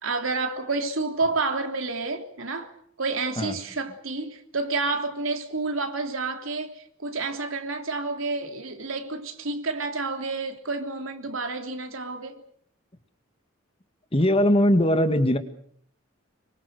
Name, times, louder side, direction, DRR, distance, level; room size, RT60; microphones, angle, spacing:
voice 1, 0.0-2.7 3.0-12.4, right 3 dB, 75° right, 3.3 m, -29 dB
voice 2, 14.1-15.4, equal, 30° left, 2.0 m, -20 dB
26.0 x 24.0 x 6.7 m
head